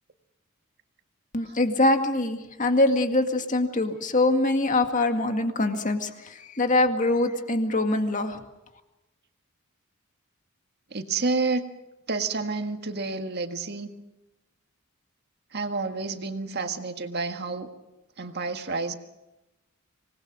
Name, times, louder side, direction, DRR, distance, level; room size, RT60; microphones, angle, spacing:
voice 1, 1.3-6.1 6.6-8.4, left 2 dB, 35° left, 6 dB, 2.0 m, -23 dB
voice 2, 10.9-11.6 12.1-13.9 15.5-17.7 18.2-19.0, right 3 dB, 50° right, 6 dB, 1.8 m, -29 dB
26.0 x 19.5 x 6.3 m, 0.99 s
head